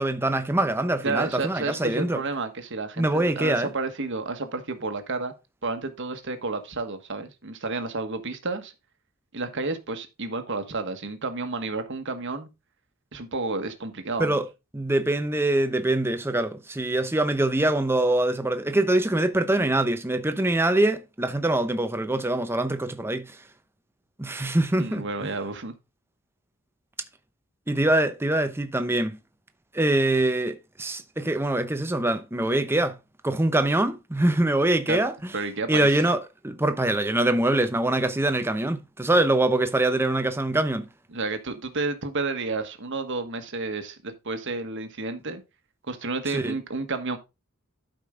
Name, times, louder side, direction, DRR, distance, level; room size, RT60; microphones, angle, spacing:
voice 1, 0.0-2.2 3.0-3.7 14.2-14.4 14.7-23.3 24.2-25.1 27.7-29.2 29.7-33.0 33.2-35.1 35.7-36.2 36.4-40.9 46.3-46.5, right 1 dB, 10° right, 0.8 m, -24 dB
voice 2, 1.0-5.3 5.6-8.7 9.3-12.5 13.1-14.4 24.8-25.7 34.9-35.0 35.3-36.1 41.1-45.4 45.9-47.2, right 3 dB, 60° right, 1.5 m, -31 dB
12.0 x 5.2 x 3.7 m
head